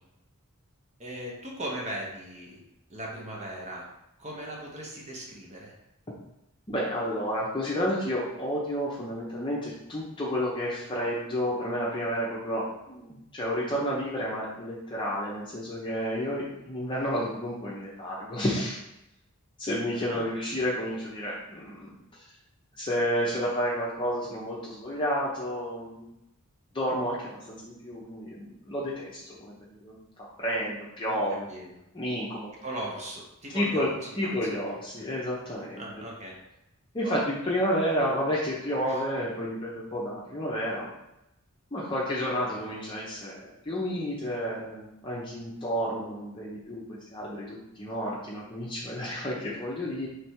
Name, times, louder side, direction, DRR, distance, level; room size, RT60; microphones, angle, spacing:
voice 1, 1.0-2.6 2.9-3.9 4.2-5.7 19.9-20.2 31.1-31.7 32.6-33.9 34.2-34.6 35.8-36.3 37.0-37.2 38.8-39.0, right 1 dB, 30° right, -2 dB, 0.8 m, -38 dB
voice 2, 6.7-18.8 19.6-22.2 22.8-26.1 26.7-31.5 31.9-32.5 33.5-33.9 34.2-35.8 36.9-40.9 41.7-50.1, equal, 20° left, -5 dB, 0.7 m, -31 dB
3.3 x 3.2 x 4.4 m, 0.87 s
head